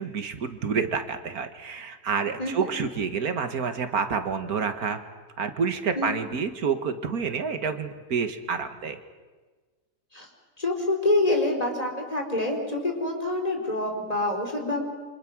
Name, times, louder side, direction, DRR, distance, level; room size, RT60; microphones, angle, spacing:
voice 1, 0.0-5.0 5.4-9.0, right 6 dB, 75° right, 9 dB, 1.9 m, -28 dB
voice 2, 10.6-14.8, left 2 dB, 25° left, 2 dB, 3.9 m, -26 dB
28.5 x 25.0 x 6.2 m, 1.3 s
omnidirectional pair, 1.6 m